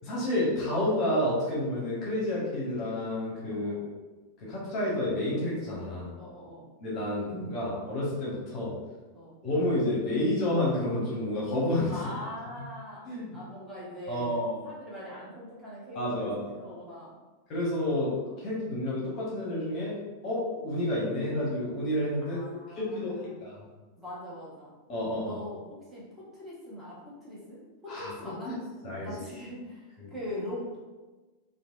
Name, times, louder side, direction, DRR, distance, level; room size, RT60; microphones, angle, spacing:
voice 1, 0.0-3.8 4.4-6.1 6.8-8.7 9.4-12.0 13.1-13.3 14.1-14.6 15.9-16.4 17.5-18.1 18.4-19.9 20.2-22.4 22.8-23.6 24.9-25.4 27.9-28.1 28.5-28.6 28.8-29.2 30.0-30.1, left 1 dB, 35° left, -5 dB, 0.9 m, -30 dB
voice 2, 3.5-3.8 6.2-6.7 9.1-9.4 11.9-13.0 13.3-17.1 18.2-18.3 22.2-23.4 24.0-24.7 25.2-28.6 29.0-30.8, left 1 dB, 5° right, -8 dB, 1.1 m, -42 dB
3.1 x 2.4 x 2.4 m, 1.2 s
figure-of-eight pair, 90°, 0 cm